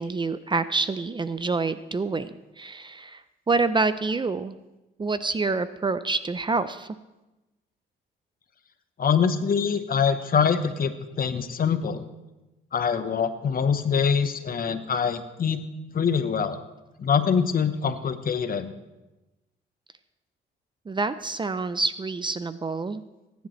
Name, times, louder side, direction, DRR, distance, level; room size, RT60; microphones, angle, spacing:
voice 1, 0.0-4.6 5.0-7.0 20.9-23.0, right 3 dB, 25° right, 13 dB, 0.5 m, -27 dB
voice 2, 9.0-12.0 12.7-15.7 15.9-16.6 17.0-18.7, left 6 dB, 45° left, 10 dB, 1.0 m, -24 dB
19.5 x 10.5 x 3.2 m, 1.0 s
cardioid pair, 90°, 20 cm